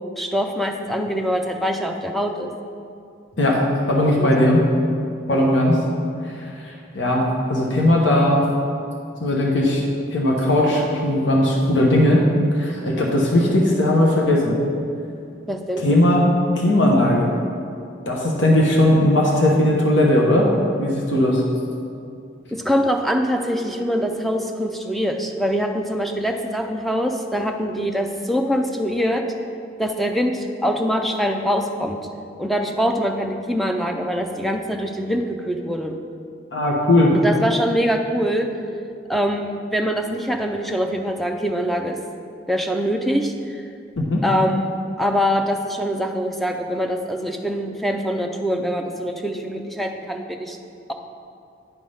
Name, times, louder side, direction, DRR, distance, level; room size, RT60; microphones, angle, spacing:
voice 1, 0.2-2.5 4.2-4.3 5.3-5.5 15.5-15.8 22.5-29.2 29.8-32.0 32.4-36.0 37.2-38.5 39.1-42.0 42.5-43.6 44.2-50.6, equal, ahead, 3 dB, 0.4 m, -23 dB
voice 2, 3.9-4.6 5.3-5.8 6.2-8.4 9.2-9.8 10.1-12.3 12.5-14.6 15.8-16.3 16.5-17.3 18.1-20.5 20.8-21.4 36.5-37.1 44.0-44.2, left 1 dB, 80° left, -2 dB, 1.0 m, -18 dB
10.0 x 3.4 x 5.5 m, 2.4 s
head